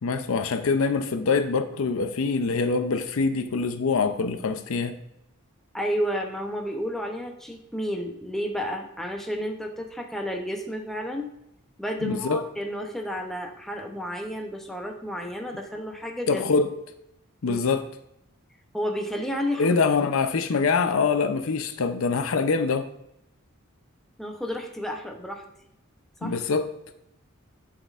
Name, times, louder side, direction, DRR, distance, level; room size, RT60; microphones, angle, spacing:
voice 1, 0.0-5.0 12.0-12.4 16.3-16.7 17.4-17.9 19.6-22.9 26.2-26.7, left 4 dB, 70° left, 9 dB, 0.5 m, -24 dB
voice 2, 5.7-11.3 11.8-16.4 17.4-17.6 18.7-19.7 24.2-25.4 26.2-26.3, equal, ahead, 2 dB, 0.6 m, -31 dB
11.0 x 4.2 x 2.4 m, 0.80 s
head